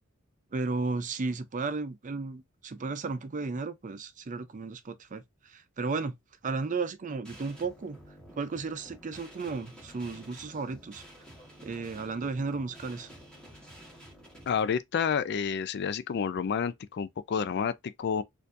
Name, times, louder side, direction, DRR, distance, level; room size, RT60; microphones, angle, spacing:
voice 1, 0.5-6.1 6.4-8.0 8.3-11.0 11.6-13.1, right 4 dB, 40° right, 0.5 m, -34 dB
sound 1, 7.2-14.6, equal, 5° left, 1.5 m, -51 dB
voice 2, 14.5-18.2, left 6 dB, 55° left, 0.4 m, -29 dB
4.4 x 2.7 x 2.5 m
head